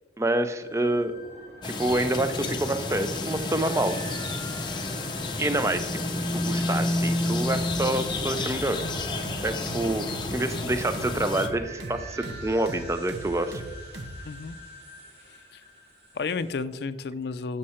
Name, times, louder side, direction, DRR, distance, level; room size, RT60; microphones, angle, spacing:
voice 1, 0.2-1.1 1.6-4.0 5.4-5.9 6.3-8.8 9.4-13.6, right 1 dB, 15° right, 9 dB, 0.5 m, -27 dB
sound 1, 0.6-16.5, equal, 65° right, 1.8 m, -46 dB
sound 2, 1.6-11.5, left 2 dB, 25° left, 0.7 m, -30 dB
sound 3, 7.5-14.2, right 1 dB, 85° right, 0.8 m, -39 dB
voice 2, 14.2-14.6 15.2-15.6 16.1-17.6, left 4 dB, 65° left, 13 dB, 0.4 m, -32 dB
7.6 x 6.6 x 4.3 m, 1.2 s
head